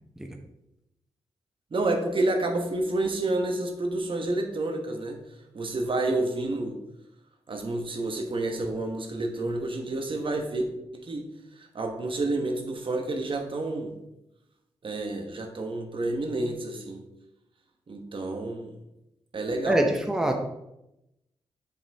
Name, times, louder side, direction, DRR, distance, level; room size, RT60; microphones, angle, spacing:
voice 1, 1.7-5.2 5.5-6.8 7.5-10.7 10.9-11.3 11.6-13.9 14.8-17.0 17.9-18.7 19.3-19.8, right 2 dB, 50° right, 3 dB, 1.2 m, -29 dB
voice 2, 19.7-20.4, right 1 dB, 5° right, 3 dB, 1.0 m, -24 dB
7.1 x 5.6 x 3.5 m, 0.88 s
cardioid pair, 55°, 11 cm